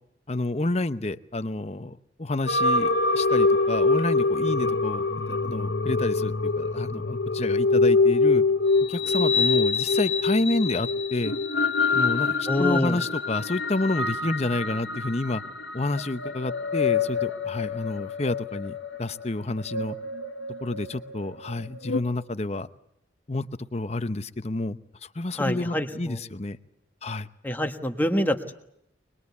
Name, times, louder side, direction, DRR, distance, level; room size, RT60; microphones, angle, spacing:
voice 1, 0.3-8.4 8.9-11.3 11.9-15.4 15.7-20.0 20.6-22.7 23.3-23.5 23.7-26.6 27.0-27.3, left 2 dB, 35° left, 12 dB, 0.9 m, -29 dB
sound 1, 2.5-22.0, left 3 dB, 85° left, 1.4 m, -25 dB
voice 2, 12.5-13.0 25.4-26.2 27.4-28.5, left 1 dB, 10° left, 6 dB, 1.4 m, -26 dB
24.5 x 21.0 x 8.4 m, 0.78 s
head